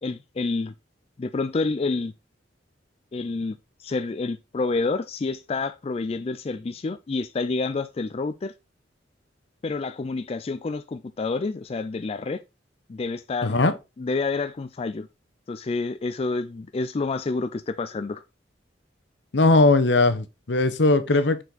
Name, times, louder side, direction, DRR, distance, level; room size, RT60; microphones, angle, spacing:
voice 1, 0.0-0.7 1.2-2.1 3.1-8.5 9.6-12.4 12.9-13.7 14.0-15.1 15.5-18.2 21.1-21.2, left 3 dB, 35° left, 0.4 m, -28 dB
voice 2, 13.4-13.7 19.3-21.4, left 2 dB, 75° left, 0.9 m, -19 dB
6.9 x 4.4 x 3.9 m
head